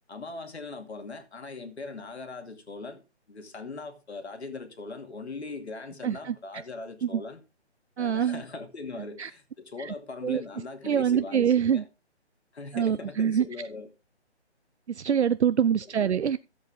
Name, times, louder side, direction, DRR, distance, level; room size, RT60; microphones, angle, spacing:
voice 1, 0.1-3.0 3.3-7.4 8.0-11.8 12.5-13.9 15.9-16.0, left 3 dB, 70° left, 2.6 m, -40 dB
voice 2, 6.0-6.4 7.0-7.2 8.0-8.4 9.2-9.3 9.8-9.9 10.2-10.4 10.8-11.8 12.7-13.4 14.9-16.4, right 8 dB, 70° right, 0.6 m, -25 dB
13.5 x 8.0 x 3.7 m
hypercardioid pair, 175°, 35 cm